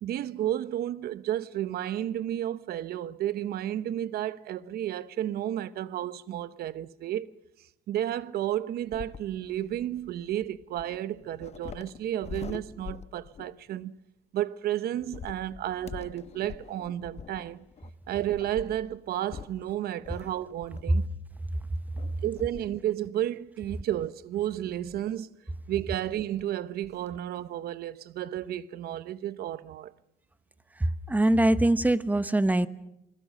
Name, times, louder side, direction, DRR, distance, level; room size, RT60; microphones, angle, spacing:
voice 1, 0.0-7.3 7.9-13.9 14.3-17.6 18.1-21.1 22.2-25.4 25.7-29.9, right 12 dB, 65° right, 1.0 m, -32 dB
sound 1, 8.8-13.7 15.0-21.2 22.0-22.9 23.3-23.4 24.5-25.2 26.1-26.2 26.4-26.5 26.8-27.2, left 7 dB, 40° left, 1.1 m, -45 dB
voice 2, 31.1-32.7, right 1 dB, 10° right, 1.0 m, -22 dB
28.0 x 20.5 x 6.5 m
cardioid pair, 110°, 17 cm